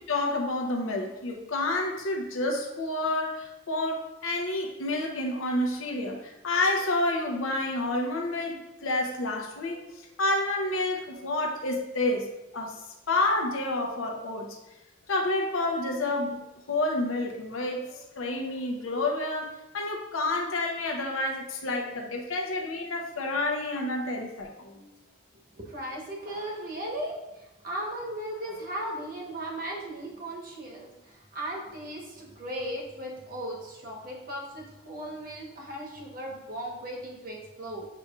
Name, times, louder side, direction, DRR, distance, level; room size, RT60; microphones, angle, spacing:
voice 1, 0.1-9.8 10.2-12.8 13.1-14.6 15.1-16.4 16.7-24.8, left 2 dB, 80° left, 1 dB, 0.7 m, -29 dB
voice 2, 25.6-37.9, right 1 dB, 45° right, -1 dB, 1.0 m, -37 dB
6.9 x 3.0 x 2.3 m, 0.99 s
head